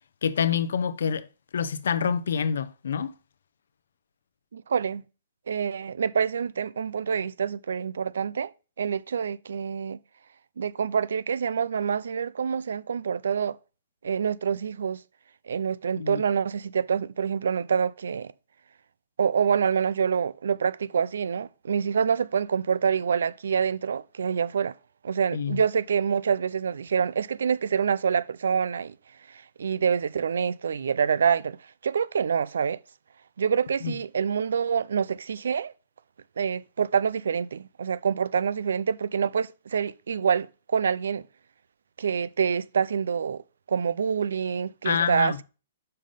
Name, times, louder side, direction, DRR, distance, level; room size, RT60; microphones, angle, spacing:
voice 1, 0.2-1.3 1.5-3.1 16.0-16.2 25.3-25.6 33.8-34.0 44.8-45.4, left 7 dB, 80° left, 0.7 m, -27 dB
voice 2, 4.5-5.0 5.5-8.5 8.8-10.0 10.6-13.6 14.0-15.0 15.5-18.3 19.2-24.8 25.0-28.9 29.3-31.6 31.8-32.8 33.4-35.7 36.4-41.2 42.0-43.4 43.7-45.4, right 7 dB, 80° right, 0.4 m, -26 dB
5.6 x 5.6 x 4.9 m
hypercardioid pair, 140°, 0 cm